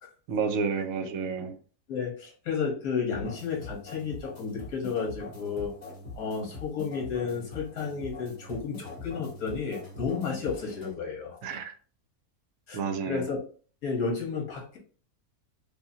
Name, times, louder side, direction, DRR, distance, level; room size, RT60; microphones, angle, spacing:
voice 1, 0.3-1.6 11.4-11.7 12.7-13.2, right 5 dB, 75° right, 7 dB, 1.0 m, -30 dB
voice 2, 1.9-5.7 6.1-11.6 12.7-12.8 13.1-13.4 13.8-14.8, left 5 dB, 75° left, -1 dB, 1.6 m, -32 dB
sound 1, 3.1-10.9, left 2 dB, 30° left, 1.6 m, -43 dB
5.4 x 2.2 x 2.6 m, 0.41 s
omnidirectional pair, 1.6 m